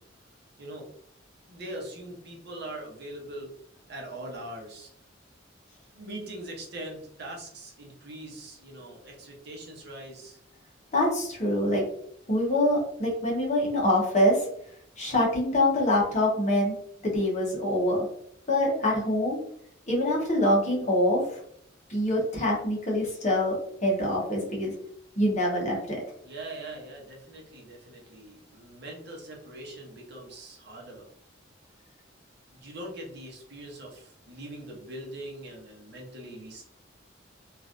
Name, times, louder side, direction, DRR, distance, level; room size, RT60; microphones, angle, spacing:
voice 1, 1.5-3.5 3.9-4.9 5.9-10.4 26.2-31.1 32.5-36.6, right 1 dB, 60° right, -1 dB, 0.9 m, -42 dB
voice 2, 10.9-11.8 12.3-14.5 15.0-16.7 17.0-18.1 18.5-19.4 19.9-21.4 21.9-23.6 23.8-24.7 25.2-26.0, left 1 dB, 40° left, -2 dB, 1.0 m, -25 dB
3.1 x 2.5 x 2.5 m, 0.69 s
head